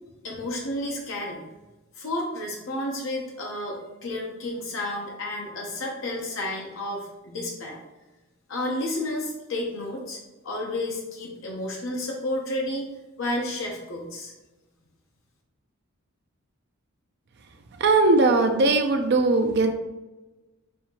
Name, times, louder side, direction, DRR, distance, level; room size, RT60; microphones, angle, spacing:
voice 1, 0.2-1.4 2.0-7.8 8.5-10.2 10.4-12.9 13.2-14.3, left 1 dB, 60° left, -1 dB, 0.8 m, -31 dB
voice 2, 17.8-19.7, right 3 dB, 50° right, 5 dB, 0.4 m, -19 dB
5.5 x 2.7 x 2.9 m, 1.1 s
head